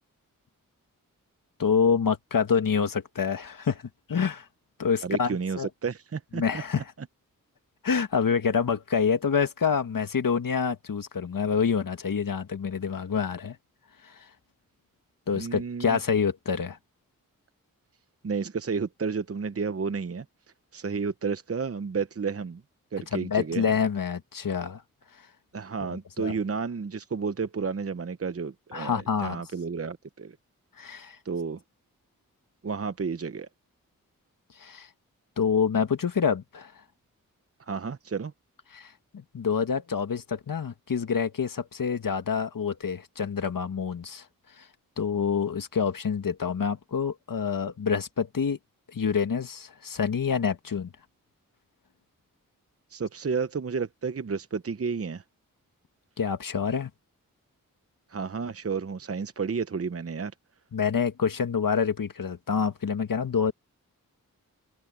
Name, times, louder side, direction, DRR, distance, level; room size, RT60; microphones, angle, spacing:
voice 1, 1.6-3.8 4.1-4.5 4.8-5.7 6.3-6.8 7.8-13.6 14.0-14.3 15.3-16.8 23.1-24.8 25.8-26.3 28.7-29.4 30.8-31.2 34.6-34.9 35.4-36.7 38.7-44.2 44.6-44.7 45.0-48.6 48.9-50.9 56.2-56.9 60.7-63.5, left 6 dB, 70° left, 2.0 m, -27 dB
voice 2, 5.0-6.4 6.8-6.9 15.3-16.0 18.2-20.2 20.7-22.6 22.9-23.7 25.5-30.4 31.2-31.6 32.6-33.5 37.6-38.3 52.9-55.2 58.1-60.3, right 5 dB, 40° right, 0.9 m, -31 dB
cardioid pair, 45°, 35 cm